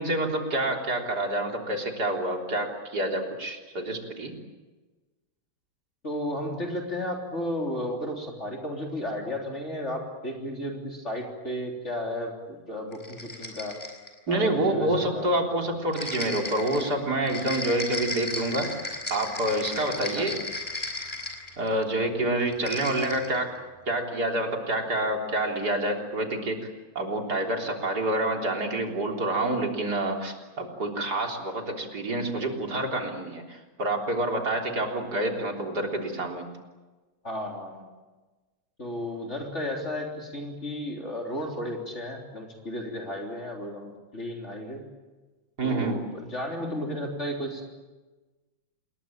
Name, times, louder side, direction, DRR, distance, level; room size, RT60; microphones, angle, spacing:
voice 1, 0.0-4.3 14.3-18.8 19.1-20.4 21.6-23.5 23.9-26.6 27.0-36.4 45.6-46.0, right 1 dB, 50° right, 2 dB, 4.2 m, -27 dB
voice 2, 6.0-13.8 14.3-15.3 20.1-20.3 37.2-37.9 38.8-44.9 45.6-47.6, left 1 dB, 35° left, 0 dB, 3.9 m, -33 dB
sound 1, 12.9-14.2 15.9-21.8 22.5-23.4, left 2 dB, 15° left, 4.7 m, -35 dB
28.0 x 21.5 x 8.9 m, 1.2 s
omnidirectional pair, 2.2 m